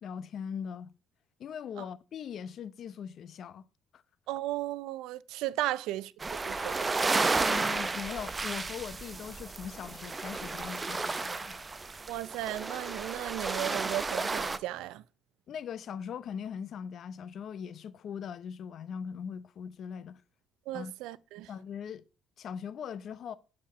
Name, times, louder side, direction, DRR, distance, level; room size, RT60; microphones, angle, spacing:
voice 1, 0.0-0.9 1.4-3.6 3.9-4.0 7.4-11.6 15.5-20.2 20.7-20.9 21.5-22.0 22.4-23.3, left 7 dB, 60° left, 0.7 m, -40 dB
voice 2, 4.3-6.1 6.4-7.0 12.1-15.0 20.7-21.5, right 15 dB, 85° right, 0.5 m, -35 dB
sound 1, 6.2-14.6, right 3 dB, 25° right, 0.7 m, -32 dB
11.5 x 4.4 x 5.6 m
cardioid pair, 90°, 0 cm